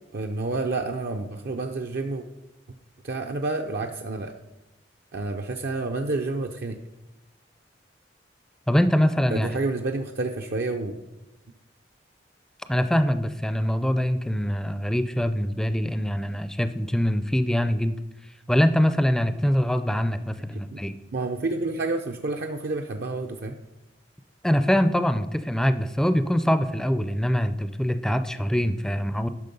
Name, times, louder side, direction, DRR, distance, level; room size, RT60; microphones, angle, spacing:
voice 1, 0.1-2.3 3.0-4.3 5.1-6.8 9.3-11.0 20.5-20.8 21.1-23.6, right 3 dB, 55° right, 5 dB, 0.6 m, -29 dB
voice 2, 8.7-9.5 12.7-18.0 18.5-20.9 24.4-29.3, equal, 5° left, 11 dB, 0.4 m, -23 dB
10.5 x 6.0 x 5.3 m, 0.99 s
head